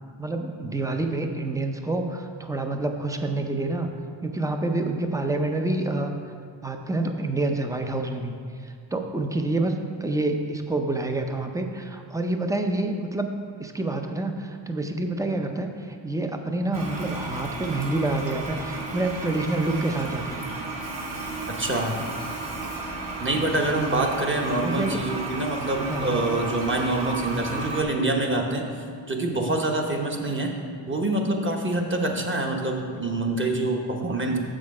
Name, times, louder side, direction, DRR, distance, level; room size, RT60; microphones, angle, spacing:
voice 1, 0.2-3.9 4.2-6.1 6.6-8.3 8.6-13.3 13.6-20.4 24.6-25.0 25.9-26.3, right 2 dB, 5° right, 5 dB, 0.5 m, -27 dB
Toilet flush, 16.7-27.8, right 2 dB, 50° right, 1.8 m, -33 dB
voice 2, 21.5-22.0 23.2-28.6 29.1-30.5 30.9-34.4, right 2 dB, 25° right, 2 dB, 1.0 m, -26 dB
7.4 x 6.4 x 4.8 m, 2.2 s
cardioid pair, 105°, 48 cm